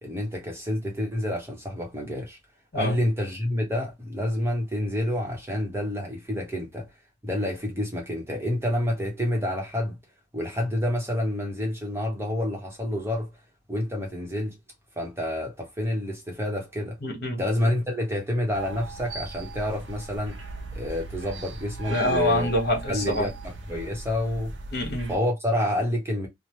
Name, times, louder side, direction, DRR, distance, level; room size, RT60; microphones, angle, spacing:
voice 1, 0.0-2.4 2.7-6.9 7.2-10.0 10.3-13.3 13.7-14.5 15.0-17.0 17.4-20.4 20.7-22.5 22.9-24.5 25.1-26.3, left 1 dB, 15° right, 0.8 m, -28 dB
voice 2, 17.0-17.4 21.9-23.3 24.7-25.1, left 1 dB, 60° left, 1.4 m, -26 dB
sound 1, 18.5-25.2, right 3 dB, 75° right, 0.7 m, -38 dB
3.0 x 2.0 x 3.0 m
head